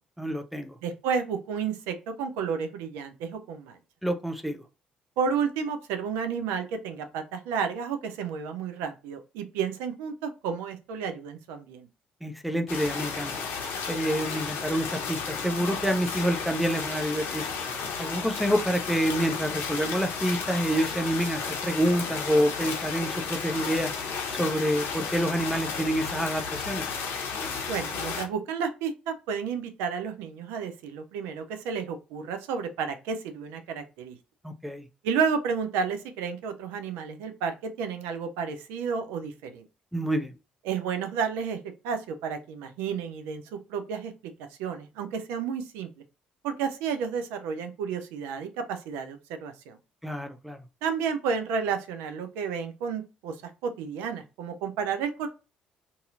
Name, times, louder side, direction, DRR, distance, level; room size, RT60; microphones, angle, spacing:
voice 1, 0.2-0.8 4.0-4.6 12.2-13.3 13.9-17.4 18.0-23.9 24.3-26.9 34.4-34.9 39.9-40.3 50.0-50.6, equal, ahead, 7 dB, 0.5 m, -27 dB
voice 2, 0.8-3.8 5.2-11.9 27.7-34.2 35.0-39.6 40.7-41.6 41.8-43.4 43.7-44.1 44.6-45.9 46.4-49.8 50.8-55.3, right 6 dB, 70° right, 7 dB, 0.4 m, -31 dB
sound 1, 12.7-28.2, left 5 dB, 60° left, 0.7 m, -33 dB
2.7 x 2.6 x 2.4 m, 0.30 s
figure-of-eight pair, 45°, 4 cm